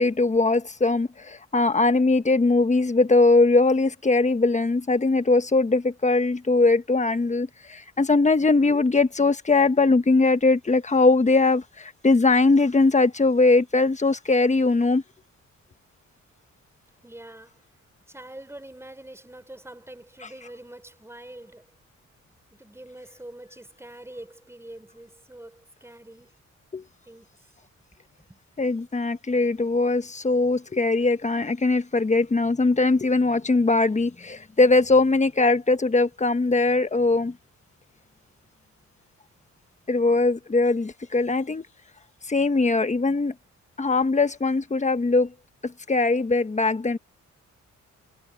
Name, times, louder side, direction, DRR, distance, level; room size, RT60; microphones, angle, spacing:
voice 1, 0.0-15.0 26.7-26.8 28.6-37.3 39.9-41.7 42.3-43.3 43.8-45.3 45.6-47.0, left 3 dB, 25° left, 1.3 m, -21 dB
voice 2, 17.0-17.6 18.1-21.7 22.5-26.3 27.1-27.3 28.3-28.6, right 1 dB, 10° right, 5.0 m, -44 dB
cardioid pair, 105°, 29 cm